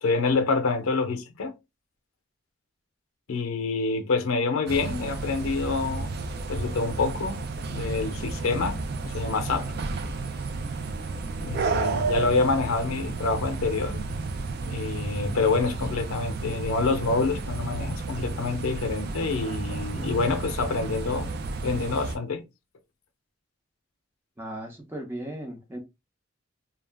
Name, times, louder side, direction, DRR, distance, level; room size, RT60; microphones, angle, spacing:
voice 1, 0.0-1.6 3.3-6.1 6.5-7.4 7.7-9.7 11.4-14.1 14.6-21.3 21.6-22.4, left 4 dB, 85° left, 0.5 m, -27 dB
sound 1, 4.7-22.2, right 3 dB, 50° right, 0.4 m, -32 dB
voice 2, 24.4-25.8, right 1 dB, 10° right, 0.7 m, -36 dB
2.3 x 2.0 x 3.3 m
head